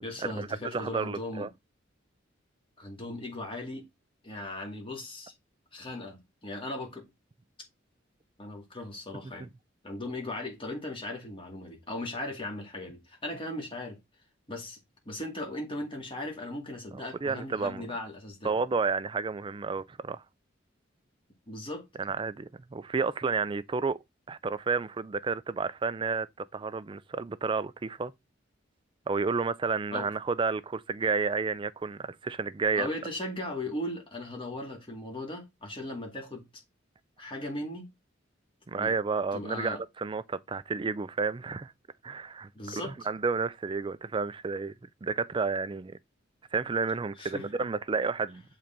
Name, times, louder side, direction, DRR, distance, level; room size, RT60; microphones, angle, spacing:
voice 1, 0.0-1.5 2.8-3.9 4.2-5.3 5.7-7.1 8.4-9.5 9.8-14.0 14.5-14.8 15.1-18.5 21.5-21.9 29.9-30.1 32.8-36.6 37.2-37.9 38.8-39.0 39.3-39.8 42.5-43.0 47.2-47.7, left 1 dB, 25° left, 2.1 m, -38 dB
voice 2, 0.7-1.5 16.9-17.9 18.4-20.2 22.0-24.0 24.3-28.1 29.1-32.9 38.7-41.7 42.0-44.7 45.0-46.0 46.5-48.4, right 4 dB, 25° right, 0.4 m, -31 dB
6.9 x 3.8 x 4.4 m
head